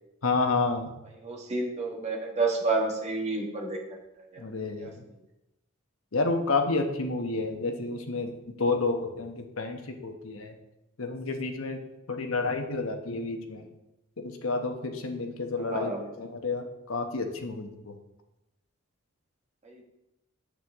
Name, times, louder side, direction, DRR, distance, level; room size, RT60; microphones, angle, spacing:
voice 1, 0.2-0.9 4.4-5.0 6.1-10.5 11.0-11.8 12.1-13.7 14.2-15.9 16.2-17.9, left 3 dB, 75° left, 5 dB, 1.0 m, -30 dB
voice 2, 1.2-3.8 4.3-4.4 4.8-4.9 15.6-16.1 19.6-19.8, right 3 dB, 30° right, -1 dB, 1.6 m, -30 dB
8.3 x 7.6 x 3.6 m, 0.92 s
head